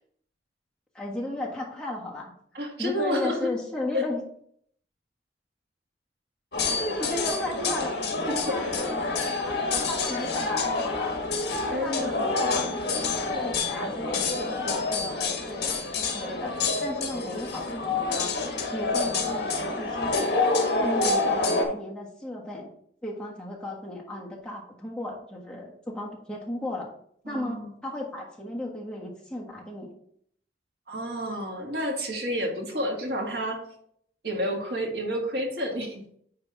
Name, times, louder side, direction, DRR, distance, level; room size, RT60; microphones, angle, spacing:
voice 1, 0.9-2.3 2.8-4.2 6.6-8.0 8.3-11.1 11.5-12.6 13.1-16.5 16.8-18.3 18.7-20.5 20.8-22.7 23.0-26.9 27.3-29.9, left 1 dB, 5° left, -4 dB, 1.4 m, -35 dB
voice 2, 2.5-3.5 3.9-4.1 8.2-8.4 11.7-12.3 27.2-27.7 30.9-33.6 34.2-36.0, equal, 60° right, 1 dB, 1.6 m, -30 dB
sound 1, 6.5-21.6, left 3 dB, 65° left, 1.5 m, -27 dB
9.7 x 3.4 x 4.6 m, 0.65 s
head